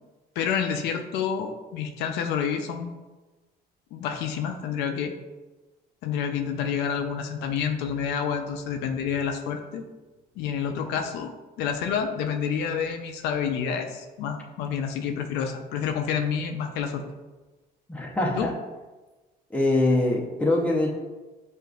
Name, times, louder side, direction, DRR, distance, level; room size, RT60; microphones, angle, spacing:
voice 1, 0.4-3.0 3.9-5.2 6.0-9.8 10.4-17.0 18.4-18.5, left 7 dB, 80° left, 5 dB, 0.4 m, -28 dB
voice 2, 17.9-18.5 19.5-20.9, left 2 dB, 10° left, -2 dB, 0.7 m, -23 dB
6.5 x 2.5 x 2.3 m, 1.2 s
cardioid pair, 110°, 17 cm